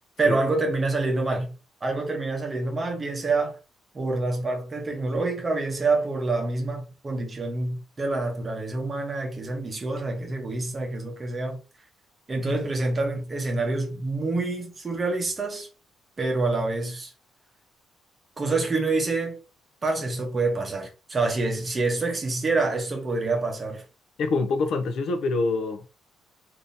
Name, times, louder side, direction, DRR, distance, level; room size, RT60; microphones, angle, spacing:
voice 1, 0.2-3.6 3.9-11.6 12.3-15.7 16.2-17.1 18.4-19.4 19.8-23.8, right 3 dB, 20° right, 0.8 m, -27 dB
voice 2, 24.2-25.9, left 3 dB, 55° left, 0.5 m, -25 dB
3.5 x 2.6 x 2.6 m
cardioid pair, 170°, 0 cm